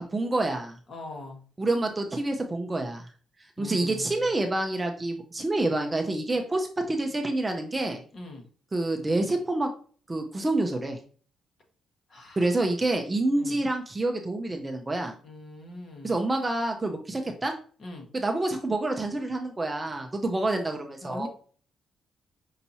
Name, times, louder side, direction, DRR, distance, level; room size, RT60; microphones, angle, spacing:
voice 1, 0.0-0.8 1.6-3.1 3.6-8.0 8.7-9.7 10.1-11.0 12.4-15.1 16.0-17.5 18.1-21.3, right 2 dB, 15° right, 3 dB, 0.5 m, -27 dB
voice 2, 0.9-1.4 3.6-4.3 8.1-8.4 12.1-12.5 13.4-13.6 15.2-16.1 17.8-18.1 21.0-21.3, left 2 dB, 40° left, 2 dB, 1.2 m, -41 dB
5.5 x 2.9 x 2.7 m, 0.43 s
cardioid pair, 135°, 0 cm